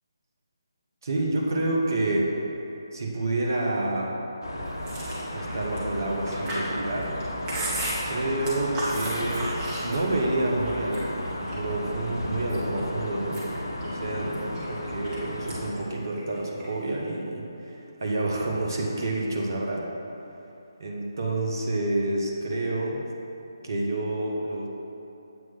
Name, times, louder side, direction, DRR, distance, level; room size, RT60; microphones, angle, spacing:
voice 1, 1.0-2.3 2.9-4.1 5.0-5.1 5.3-7.2 8.1-9.5 9.8-11.1 11.5-14.4 14.7-19.9 20.8-23.0 23.6-24.7, right 2 dB, 55° right, -2 dB, 1.0 m, -28 dB
sound 1, 4.4-15.7, left 1 dB, 55° left, 0.9 m, -34 dB
Chewing mastication, 4.8-10.3 10.7-11.7 12.2-12.8 13.2-15.2 15.5-15.8 16.1-16.9, right 1 dB, 20° right, 1.0 m, -35 dB
7.7 x 3.1 x 5.6 m, 3.0 s
figure-of-eight pair, 145°, 2 cm